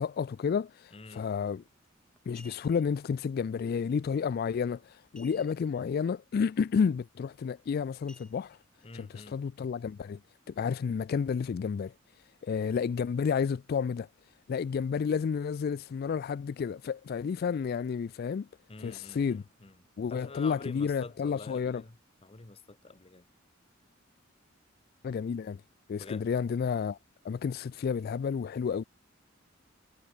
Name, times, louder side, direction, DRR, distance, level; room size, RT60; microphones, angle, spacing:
voice 1, 0.0-1.6 2.3-8.6 8.9-10.2 10.5-11.9 12.4-14.1 14.5-18.5 18.8-19.4 20.0-21.8 25.0-25.6 25.9-27.0 27.2-28.8, left 6 dB, 50° left, 0.3 m, -31 dB
voice 2, 0.9-1.2 8.8-9.4 12.5-12.8 18.7-19.7 20.1-22.0 22.2-23.2 25.9-26.2, left 3 dB, 30° left, 1.0 m, -47 dB
sound 1, 1.6-1.7 2.2-2.9 5.1-5.8 6.2-6.3 6.7-7.0 8.1-8.9 9.4-9.5, left 1 dB, 5° left, 7.9 m, -56 dB
head